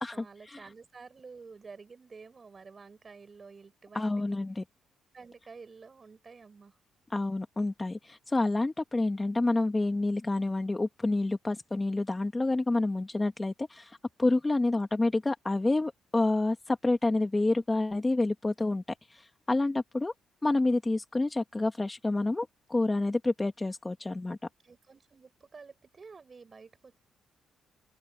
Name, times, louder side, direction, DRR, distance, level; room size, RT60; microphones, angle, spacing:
voice 1, 0.0-4.4 5.1-6.8 24.6-27.0, right 4 dB, 35° right, 6.0 m, -50 dB
voice 2, 3.9-4.6 7.1-18.8 19.1-20.1 20.4-24.4, left 2 dB, 20° left, 2.0 m, -28 dB
open air
cardioid pair, 90°, 0 cm